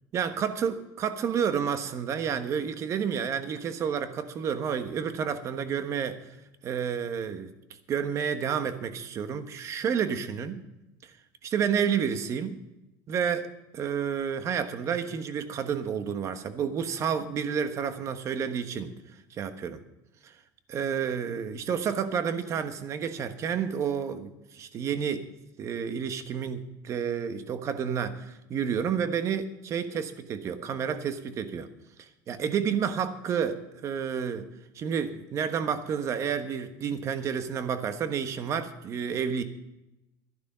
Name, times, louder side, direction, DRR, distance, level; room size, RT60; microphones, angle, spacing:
voice 1, 0.1-6.2 6.6-7.5 7.9-10.6 11.0-11.1 11.4-12.6 13.1-13.5 13.7-18.9 19.4-19.8 20.2-20.3 20.7-25.3 25.6-31.7 32.0-34.5 34.7-39.4, right 7 dB, 35° right, 10 dB, 1.2 m, -30 dB
12.5 x 11.0 x 5.5 m, 0.95 s
cardioid pair, 145°, 9 cm